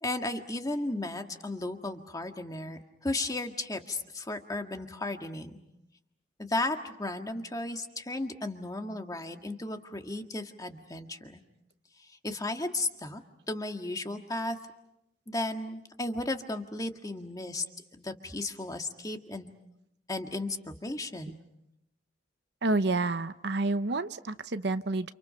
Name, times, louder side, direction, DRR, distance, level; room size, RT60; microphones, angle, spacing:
voice 1, 0.0-5.6 6.4-11.4 12.2-13.2 13.5-14.6 15.3-17.6 17.9-19.5 20.1-21.4, left 2 dB, 20° left, 5 dB, 1.7 m, -34 dB
voice 2, 22.6-25.1, right 2 dB, 65° right, 11 dB, 0.8 m, -29 dB
29.5 x 28.5 x 5.7 m, 0.86 s
head